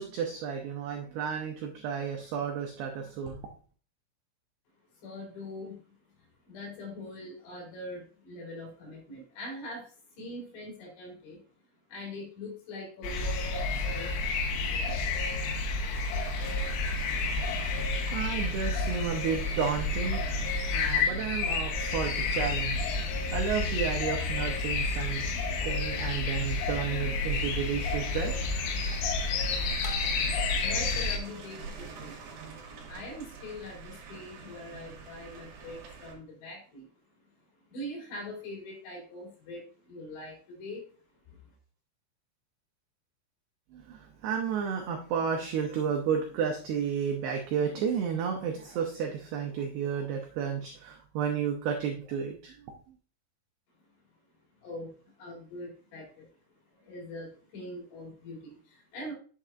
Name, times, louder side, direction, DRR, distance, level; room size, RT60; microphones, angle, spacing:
voice 1, 0.0-3.4 18.1-20.3 20.7-28.3 43.7-52.6, right 7 dB, 90° right, 2 dB, 2.3 m, -32 dB
voice 2, 4.9-5.9 6.5-11.4 11.9-15.0 30.6-32.2 32.9-36.9 37.7-40.8 41.3-41.4 54.6-56.3 56.7-59.1, left 1 dB, 60° left, -1 dB, 5.2 m, -43 dB
sound 1, 13.0-31.2, left 3 dB, 80° left, 3.5 m, -30 dB
sound 2, 16.2-36.1, right 5 dB, 60° right, 3.0 m, -45 dB
8.9 x 7.0 x 2.4 m, 0.40 s
omnidirectional pair, 5.9 m